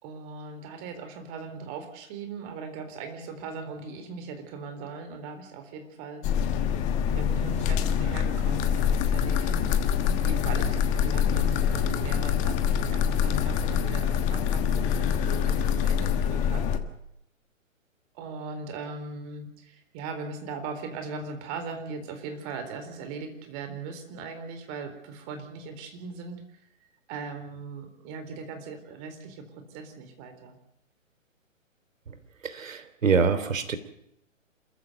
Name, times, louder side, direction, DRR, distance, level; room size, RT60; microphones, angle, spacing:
voice 1, 0.0-6.2 7.2-9.7 10.2-16.6 18.1-26.7 27.1-30.6, right 4 dB, 30° right, 7 dB, 3.9 m, -39 dB
sound 1, 6.2-16.8, left 8 dB, 20° left, 1.3 m, -25 dB
voice 2, 32.4-33.8, right 5 dB, 75° right, 11 dB, 3.2 m, -25 dB
27.5 x 14.5 x 8.0 m, 0.80 s
hypercardioid pair, 145°, 40 cm